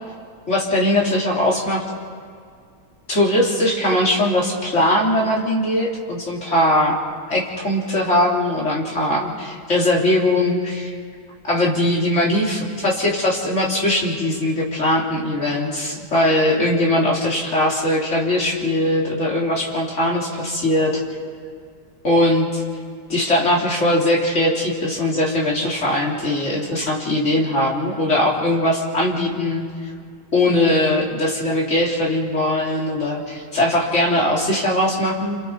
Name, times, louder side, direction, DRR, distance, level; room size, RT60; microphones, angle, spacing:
voice 1, 0.5-1.8 3.1-7.0 7.3-11.0 11.4-21.0 22.0-22.6 23.1-29.7 30.3-35.4, left 1 dB, 35° left, -3 dB, 3.8 m, -20 dB
29.0 x 26.5 x 4.7 m, 2.1 s
omnidirectional pair, 2.2 m